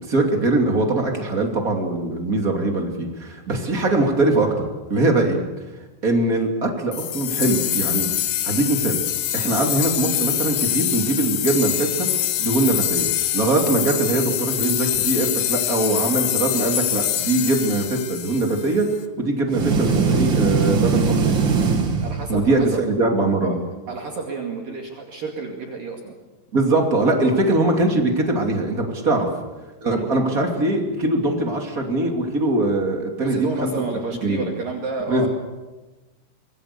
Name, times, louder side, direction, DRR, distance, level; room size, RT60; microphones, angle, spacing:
voice 1, 0.0-5.4 6.0-8.1 8.4-9.0 9.3-12.1 12.4-18.9 19.2-21.4 22.3-23.5 26.5-29.3 29.8-33.7 34.2-34.4 35.1-35.3, right 2 dB, 25° right, 2 dB, 2.3 m, -22 dB
sound 1, 6.9-18.9, left 12 dB, 70° left, 2.4 m, -24 dB
sound 2, 19.5-22.7, right 5 dB, 70° right, 1.1 m, -20 dB
voice 2, 22.0-22.8 23.4-23.6 23.9-26.2 27.2-27.4 29.1-29.3 29.8-30.3 33.2-35.3, right 4 dB, 50° right, 1 dB, 3.5 m, -30 dB
25.5 x 22.5 x 6.9 m, 1.2 s
omnidirectional pair, 5.6 m